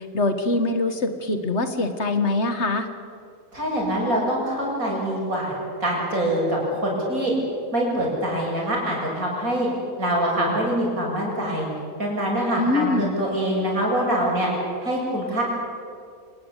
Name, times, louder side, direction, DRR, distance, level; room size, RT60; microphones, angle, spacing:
voice 1, 0.0-2.9 12.6-13.0, left 2 dB, 50° left, 8 dB, 2.0 m, -23 dB
voice 2, 3.5-5.5 5.8-7.3 7.7-9.7 10.0-11.7 12.0-14.5 14.8-15.4, right 1 dB, 70° right, -2 dB, 7.5 m, -24 dB
26.5 x 19.5 x 8.4 m, 2.4 s
omnidirectional pair, 1.5 m